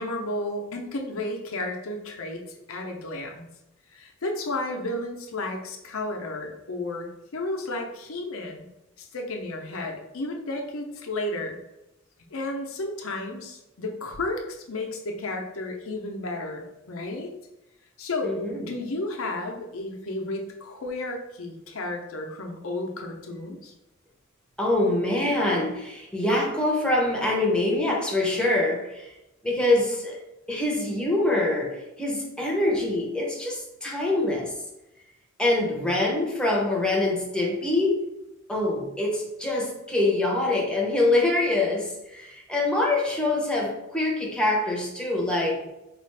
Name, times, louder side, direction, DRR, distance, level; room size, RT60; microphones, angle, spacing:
voice 1, 0.0-2.4 2.7-3.5 3.9-8.7 9.0-11.6 12.3-17.3 18.0-18.4 18.7-23.7, left 2 dB, 85° left, 2 dB, 0.7 m, -32 dB
voice 2, 18.2-18.7 24.6-29.1 29.4-30.2 30.5-34.5 35.4-38.0 38.5-45.7, left 2 dB, 5° left, -2 dB, 0.7 m, -25 dB
4.5 x 2.4 x 3.3 m, 0.93 s
head